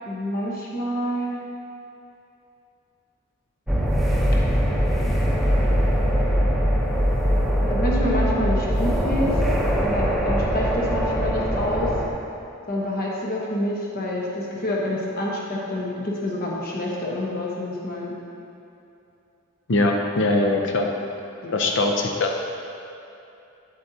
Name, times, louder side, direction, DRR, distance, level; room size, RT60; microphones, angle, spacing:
voice 1, 0.1-1.4 7.7-9.4 9.8-11.9 12.7-18.1 21.4-21.6, left 1 dB, 45° left, -3 dB, 1.0 m, -27 dB
sound 1, 3.7-12.1, equal, ahead, 0.8 m, -22 dB
voice 2, 19.7-20.9 21.5-22.4, left 2 dB, 60° left, 2 dB, 0.6 m, -21 dB
9.1 x 7.8 x 2.7 m, 2.7 s
head